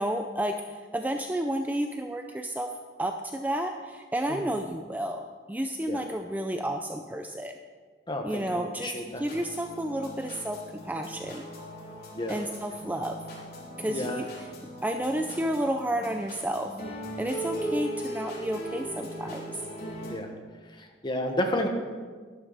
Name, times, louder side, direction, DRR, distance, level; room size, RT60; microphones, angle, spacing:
voice 1, 0.0-2.7 3.0-5.2 5.5-7.6 8.2-11.4 12.3-13.2 13.8-14.3 14.8-16.7 17.2-19.4, right 1 dB, 10° right, 5 dB, 0.5 m, -31 dB
voice 2, 8.1-9.2 12.1-12.4 13.9-14.2 20.0-20.3 20.7-21.7, left 1 dB, 25° left, 3 dB, 1.3 m, -31 dB
sound 1, 9.1-20.1, right 1 dB, 55° left, 3.0 m, -39 dB
12.0 x 11.5 x 4.1 m, 1.5 s
head